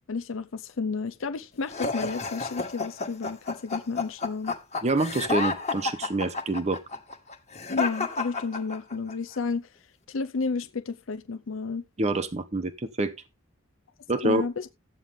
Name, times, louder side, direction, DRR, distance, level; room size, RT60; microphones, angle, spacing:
voice 1, 0.1-4.5 7.7-9.7 10.1-11.8 14.2-14.7, left 4 dB, 65° left, 0.6 m, -31 dB
sound 1, 1.7-9.1, left 4 dB, 35° left, 1.7 m, -31 dB
voice 2, 4.8-6.8 12.0-13.1 14.1-14.4, right 2 dB, 35° right, 0.9 m, -26 dB
13.5 x 8.9 x 3.6 m
head